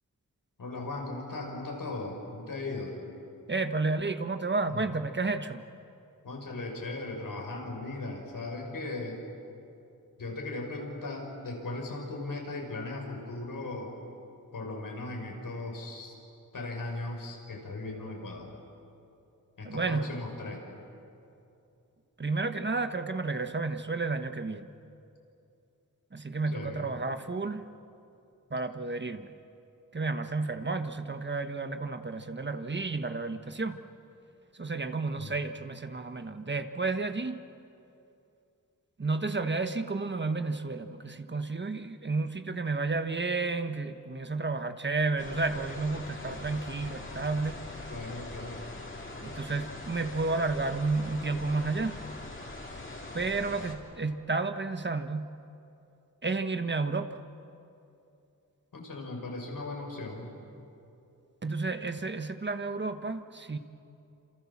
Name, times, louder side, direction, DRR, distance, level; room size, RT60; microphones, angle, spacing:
voice 1, 0.6-2.9 4.7-4.8 6.2-9.2 10.2-13.9 14.5-16.2 16.5-18.5 19.6-20.6 26.5-26.9 35.2-35.4 47.9-48.6 58.7-60.3, left 2 dB, 80° left, 1 dB, 6.0 m, -38 dB
voice 2, 3.5-5.6 19.6-20.1 22.2-24.7 26.1-27.6 28.5-29.3 29.9-33.8 34.6-37.4 39.0-47.6 49.2-52.0 53.1-55.3 56.2-57.2 61.4-63.6, right 3 dB, 35° right, 8 dB, 1.3 m, -31 dB
sound 1, 45.2-53.7, left 2 dB, 35° left, 3.8 m, -42 dB
29.5 x 27.5 x 7.4 m, 2.7 s
wide cardioid pair, 90°, 33 cm